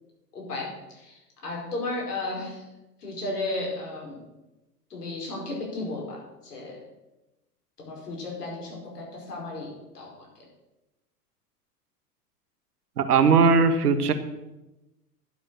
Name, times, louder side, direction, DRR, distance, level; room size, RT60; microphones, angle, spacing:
voice 1, 0.3-2.6 3.0-4.2 4.9-6.8 7.8-10.3, left 2 dB, 75° left, -2 dB, 5.0 m, -34 dB
voice 2, 13.0-14.1, right 5 dB, 70° right, 10 dB, 1.4 m, -19 dB
11.5 x 7.7 x 6.6 m, 1.0 s
figure-of-eight pair, 90°, 47 cm